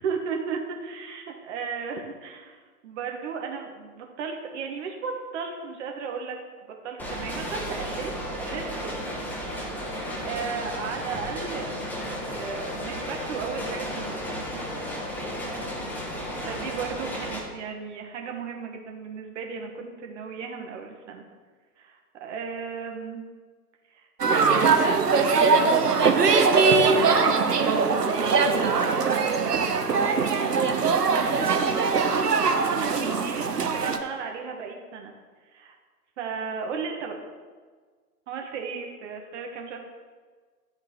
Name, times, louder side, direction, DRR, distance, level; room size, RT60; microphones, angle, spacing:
voice 1, 0.0-2.6 2.8-6.4 6.6-9.3 10.2-14.3 16.2-21.2 21.8-23.2 23.9-24.1 24.3-35.1 35.5-35.8 36.2-37.2 38.3-39.8, right 5 dB, 50° right, 2 dB, 1.5 m, -35 dB
sound 1, 7.0-17.4, equal, 5° left, 1.0 m, -33 dB
sound 2, 24.2-34.0, right 4 dB, 85° right, 0.8 m, -21 dB
11.0 x 4.7 x 4.5 m, 1.5 s
figure-of-eight pair, 105°, 46 cm